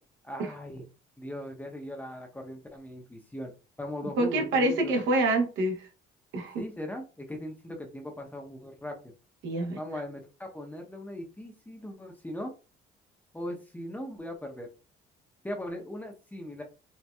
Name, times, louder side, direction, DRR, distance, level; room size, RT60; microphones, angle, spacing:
voice 1, 0.2-0.8 1.2-3.5 3.8-5.0 6.6-9.1 9.8-12.5 13.3-14.7 15.4-16.6, left 1 dB, 10° left, 2 dB, 0.7 m, -39 dB
voice 2, 4.2-5.8 6.3-6.6 9.4-9.8, right 2 dB, 75° right, 3 dB, 1.0 m, -26 dB
4.3 x 2.2 x 2.3 m, 0.33 s
cardioid pair, 90°, 19 cm